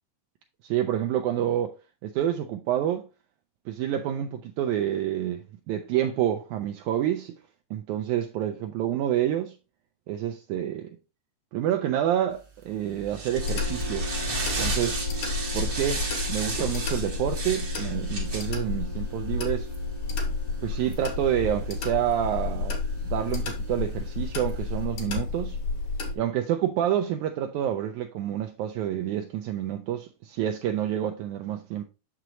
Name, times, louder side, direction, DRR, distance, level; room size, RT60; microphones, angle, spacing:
voice 1, 0.6-1.8 2.0-3.1 3.7-7.3 7.7-9.6 10.1-10.9 11.5-14.1 14.6-15.0 15.5-19.7 20.6-22.8 23.0-25.6 26.2-31.8, right 11 dB, 80° right, 1.9 m, -28 dB
sound 1, 12.4-24.9, right 4 dB, 45° right, 0.9 m, -36 dB
sound 2, 13.3-26.2, left 4 dB, 70° left, 2.8 m, -31 dB
6.6 x 6.1 x 3.0 m
omnidirectional pair, 3.6 m